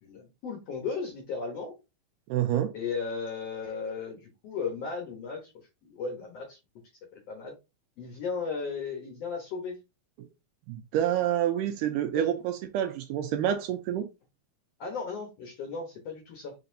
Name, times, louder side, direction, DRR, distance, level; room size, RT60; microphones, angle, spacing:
voice 1, 0.0-1.7 2.7-6.6 7.1-7.6 8.0-9.8 11.6-11.7 12.1-12.3 13.9-14.0 14.8-16.5, left 5 dB, 70° left, 1.5 m, -36 dB
voice 2, 2.3-2.7 10.7-14.1, right 11 dB, 80° right, 2.0 m, -28 dB
5.0 x 4.0 x 2.6 m
omnidirectional pair, 4.0 m